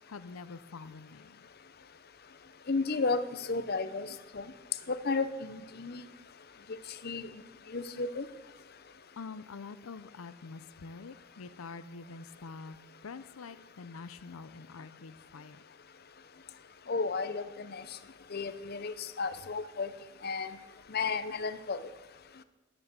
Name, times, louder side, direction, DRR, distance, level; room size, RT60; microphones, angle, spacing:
voice 1, 0.1-1.5 9.2-12.8 13.0-15.6, left 4 dB, 80° left, 13 dB, 0.6 m, -46 dB
voice 2, 2.7-3.2 3.5-4.1 4.3-4.4 4.9-6.0 7.0-7.3 7.7-8.3 16.9-17.8 18.3-19.9 20.2-20.5 20.9-21.8, left 4 dB, 45° left, 12 dB, 0.7 m, -33 dB
13.0 x 11.0 x 6.7 m, 1.1 s
head